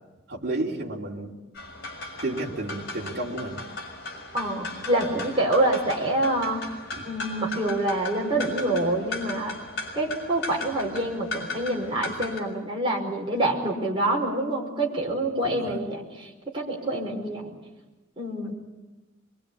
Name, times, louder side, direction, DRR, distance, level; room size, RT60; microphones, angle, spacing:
voice 1, 0.3-1.3 2.2-3.6 5.0-5.2 6.9-7.0 15.4-15.8, right 2 dB, 50° right, -2 dB, 3.5 m, -32 dB
sound 1, 1.5-12.4, left 2 dB, 55° left, 6.4 m, -37 dB
voice 2, 4.3-6.6 7.1-9.6 9.9-17.5 18.2-18.5, right 1 dB, 25° right, -1 dB, 5.3 m, -26 dB
24.0 x 23.5 x 8.6 m, 1.1 s
head